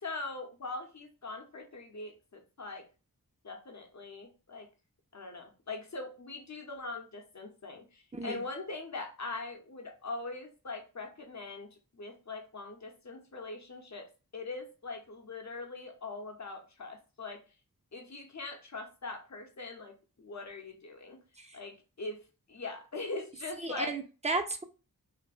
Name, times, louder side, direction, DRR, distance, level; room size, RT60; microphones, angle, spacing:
voice 1, 0.0-2.9 3.4-4.7 5.1-17.4 17.9-21.2 21.5-24.0, left 3 dB, 50° left, 3 dB, 0.7 m, -42 dB
voice 2, 23.6-24.6, right 3 dB, 20° right, 5 dB, 0.5 m, -33 dB
3.2 x 2.0 x 2.4 m, 0.33 s
wide cardioid pair, 55°, 37 cm